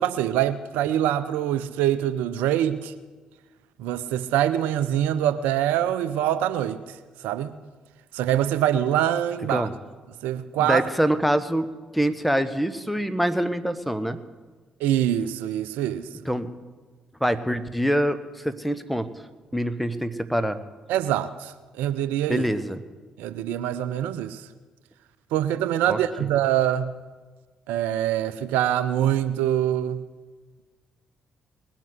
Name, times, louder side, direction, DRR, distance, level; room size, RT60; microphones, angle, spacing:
voice 1, 0.0-2.9 3.8-7.0 7.2-7.6 8.1-9.7 10.2-10.8 14.8-16.1 20.9-22.5 23.2-24.5 25.3-26.9 27.7-30.0, right 11 dB, 80° right, 14 dB, 0.5 m, -24 dB
voice 2, 10.6-11.7 11.9-14.2 16.2-16.5 17.2-19.1 19.5-20.6 22.3-22.8 25.9-26.0, equal, ahead, 14 dB, 1.2 m, -25 dB
20.0 x 7.5 x 8.1 m, 1.3 s
hypercardioid pair, 45°, 3 cm